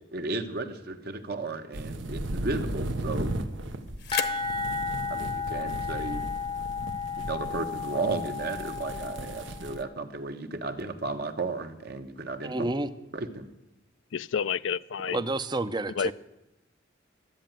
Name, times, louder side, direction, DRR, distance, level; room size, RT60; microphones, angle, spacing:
voice 1, 0.1-3.3 5.1-6.2 7.3-12.5 13.1-13.5 15.1-15.2, right 3 dB, 55° right, 7 dB, 1.1 m, -34 dB
sound 1, 1.7-7.7, left 9 dB, 55° left, 0.9 m, -41 dB
sound 2, 1.7-9.8, right 1 dB, 75° right, 1.0 m, -36 dB
sound 3, 4.1-9.7, left 5 dB, 25° left, 0.7 m, -33 dB
voice 2, 12.4-12.9 15.1-16.1, right 2 dB, 20° right, 13 dB, 0.6 m, -29 dB
voice 3, 14.1-15.2 16.0-16.1, left 6 dB, 75° left, 16 dB, 0.4 m, -29 dB
12.5 x 8.9 x 9.0 m, 0.97 s
head